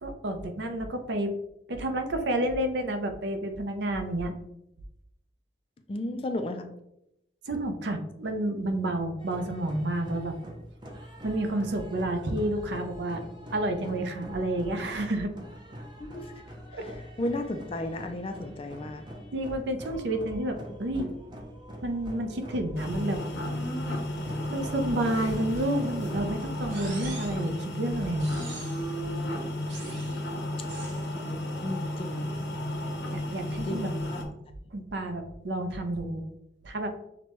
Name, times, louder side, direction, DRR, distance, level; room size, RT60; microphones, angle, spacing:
voice 1, 0.0-1.3 1.7-4.3 7.5-10.4 11.2-13.2 13.5-15.3 16.7-16.8 19.3-21.1 21.8-23.2 24.5-28.3 33.1-33.9 34.7-36.2 36.6-36.9, right 1 dB, 70° right, 6 dB, 0.5 m, -30 dB
voice 2, 5.9-6.7 16.0-16.4 16.7-19.1 20.7-21.2 30.6-30.7 31.1-32.3 33.6-34.3, left 1 dB, 30° left, 7 dB, 0.3 m, -35 dB
sound 1, 9.2-26.5, equal, 25° right, 0.5 m, -44 dB
sound 2, 22.8-34.2, left 1 dB, 70° left, 0.7 m, -33 dB
sound 3, 26.7-27.5 28.2-28.9 29.7-30.2 30.7-31.1, right 3 dB, 85° right, 1.0 m, -44 dB
5.9 x 2.2 x 2.9 m, 0.83 s
head